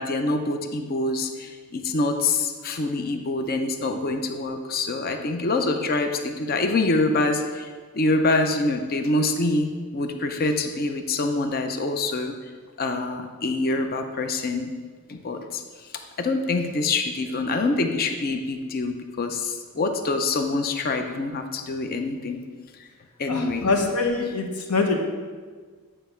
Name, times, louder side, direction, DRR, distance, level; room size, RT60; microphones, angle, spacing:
voice 1, 0.0-7.7 7.9-12.3 12.8-14.7 15.1-15.6 16.2-22.4 23.2-23.7, left 2 dB, 40° left, 6 dB, 0.5 m, -25 dB
voice 2, 23.3-25.0, left 3 dB, 85° left, 3 dB, 1.0 m, -24 dB
9.1 x 3.3 x 5.6 m, 1.5 s
head